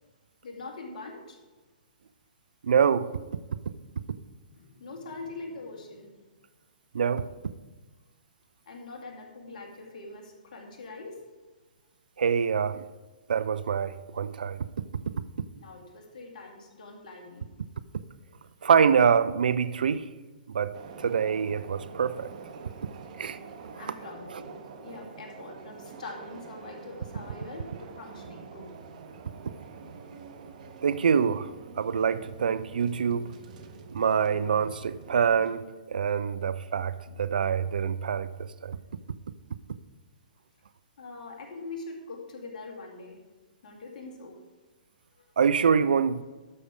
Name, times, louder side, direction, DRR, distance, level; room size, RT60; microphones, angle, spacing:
voice 1, 0.4-1.4 4.5-6.1 8.7-11.2 15.5-17.5 23.8-28.7 41.0-43.2 43.6-44.4 45.2-45.3, left 3 dB, 55° left, 2.5 m, -43 dB
voice 2, 2.6-3.1 6.9-7.3 12.2-12.8 13.3-14.7 18.6-20.1 20.5-22.3 23.2-23.4 30.8-31.5 31.8-33.3 33.9-38.8 45.4-46.2, right 7 dB, 75° right, 0.4 m, -25 dB
London Underground- Baker Street to Piccadilly Circus, 20.7-35.6, right 5 dB, 55° right, 1.1 m, -46 dB
12.0 x 6.4 x 5.0 m
hypercardioid pair, 125°, 5 cm